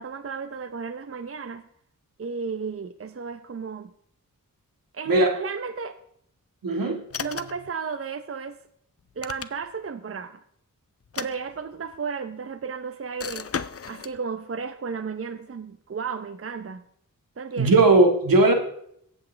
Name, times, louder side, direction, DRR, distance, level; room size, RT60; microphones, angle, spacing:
voice 1, 0.0-1.6 2.2-3.9 4.9-6.0 7.2-8.6 9.2-10.4 11.1-13.5 13.9-16.8 17.4-17.8, right 5 dB, 40° right, 10 dB, 0.7 m, -33 dB
voice 2, 6.6-7.0 17.6-18.5, right 2 dB, 80° right, 3 dB, 2.0 m, -18 dB
sound 1, 7.1-7.7 9.0-9.9 11.0-12.0 13.2-14.2, left 6 dB, 45° left, 0.6 m, -35 dB
23.0 x 8.1 x 3.4 m, 0.70 s
wide cardioid pair, 65°, 34 cm